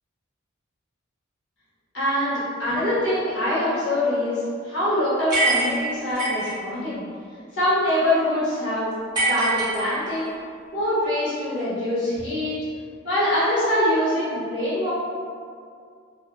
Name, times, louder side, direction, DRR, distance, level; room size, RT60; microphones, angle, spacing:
voice 1, 1.9-7.0 7.5-8.9 9.2-10.3 10.7-12.6 13.0-14.9, left 1 dB, 60° left, -11 dB, 1.1 m, -24 dB
sound 1, 5.3-6.5 9.1-10.3, right 2 dB, 20° right, 0.8 m, -24 dB
2.5 x 2.4 x 2.3 m, 2.2 s
head